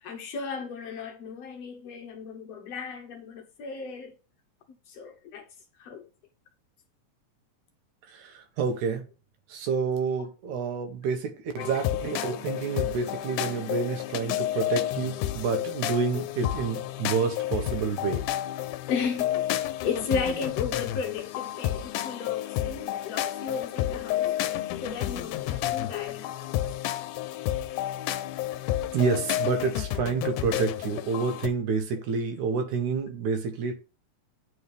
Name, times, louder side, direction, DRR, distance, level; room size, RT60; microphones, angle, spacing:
voice 1, 0.0-4.1 4.9-5.4 5.8-6.1 11.6-11.7 12.2-12.3 18.9-19.3 19.8-24.2 24.8-26.5, left 5 dB, 65° left, 1.9 m, -34 dB
voice 2, 8.1-9.0 9.5-18.2 28.9-33.8, right 5 dB, 75° right, 2.5 m, -29 dB
sound 1, 11.6-31.5, left 13 dB, 90° left, 2.1 m, -31 dB
9.3 x 4.3 x 3.4 m
omnidirectional pair, 3.5 m